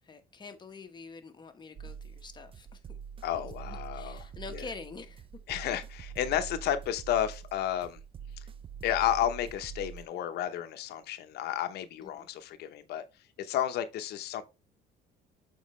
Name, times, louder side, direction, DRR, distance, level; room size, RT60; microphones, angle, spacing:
voice 1, 0.0-3.0 3.4-5.3 12.0-12.3, left 4 dB, 25° left, 1.2 m, -46 dB
sound 1, 1.8-10.1, right 7 dB, 30° right, 0.5 m, -44 dB
voice 2, 3.2-4.2 4.5-4.6 5.5-8.0 8.8-13.0 13.4-14.4, left 11 dB, 75° left, 0.9 m, -32 dB
7.3 x 4.7 x 3.2 m
cardioid pair, 110°, 17 cm